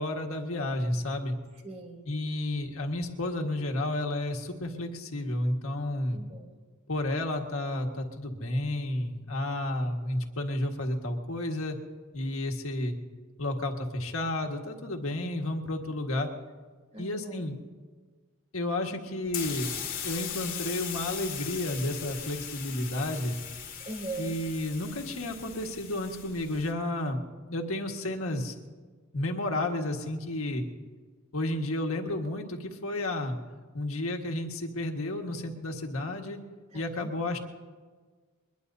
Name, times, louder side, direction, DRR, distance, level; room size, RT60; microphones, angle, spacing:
voice 1, 0.0-1.4 2.0-6.2 6.9-11.8 12.1-12.9 13.4-16.3 17.0-17.5 18.5-19.7 20.0-23.3 24.2-27.2 27.5-28.5 29.1-30.6 31.3-33.4 33.7-36.4 36.7-37.4, left 1 dB, 75° left, 3 dB, 1.7 m, -31 dB
voice 2, 1.6-2.0 6.1-6.5 16.9-17.5 23.8-24.4 36.7-37.1, right 2 dB, 30° right, 0 dB, 3.1 m, -40 dB
sound 1, 19.3-26.7, left 8 dB, 40° left, 2.1 m, -39 dB
22.5 x 21.5 x 2.8 m, 1.5 s
head